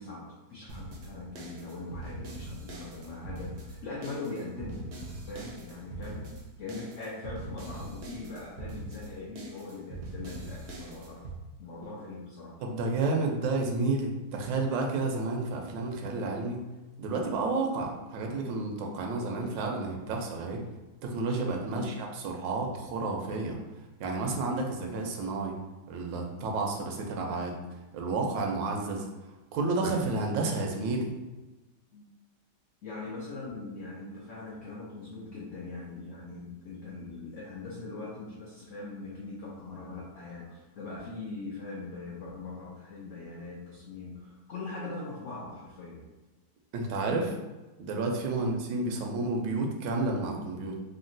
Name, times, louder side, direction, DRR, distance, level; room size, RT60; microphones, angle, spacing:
voice 1, 0.0-4.9 5.2-11.3 11.6-12.6 21.7-22.0 31.9-32.1 32.8-46.1 48.3-48.6, left 3 dB, 85° left, -4 dB, 0.6 m, -41 dB
sound 1, 0.7-11.4, right 2 dB, 75° right, 0.7 m, -42 dB
voice 2, 12.6-16.6 17.0-20.6 21.0-23.6 24.0-25.6 25.9-27.6 27.9-29.1 29.5-31.1 46.7-47.4 47.8-50.8, right 3 dB, 90° right, 1 dB, 1.3 m, -31 dB
3.7 x 2.1 x 2.6 m, 1.1 s
omnidirectional pair, 1.9 m